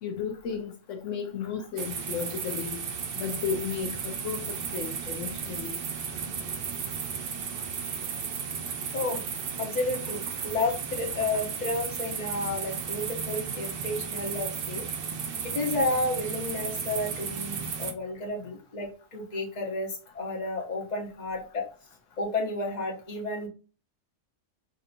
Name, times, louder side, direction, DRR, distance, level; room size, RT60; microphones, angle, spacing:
voice 1, 0.0-2.8 3.2-5.7, left 7 dB, 75° left, 0.9 m, -34 dB
sound 1, 1.8-17.9, right 6 dB, 55° right, 0.7 m, -34 dB
voice 2, 9.6-14.9 15.4-21.7 22.2-23.5, left 2 dB, 35° left, 1.1 m, -31 dB
5.0 x 2.7 x 2.6 m
omnidirectional pair, 1.4 m